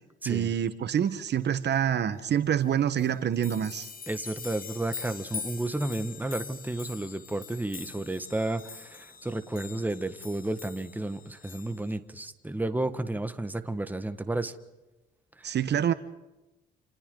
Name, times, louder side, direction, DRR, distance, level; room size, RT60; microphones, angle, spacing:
voice 1, 0.2-3.9 15.4-15.9, right 9 dB, 60° right, 1.3 m, -26 dB
sound 1, 2.6-2.7 3.0-12.0, left 6 dB, 45° left, 1.8 m, -43 dB
voice 2, 4.1-14.5 15.4-15.6, right 2 dB, 10° right, 1.6 m, -32 dB
29.0 x 28.5 x 3.9 m
cardioid pair, 90°, 20 cm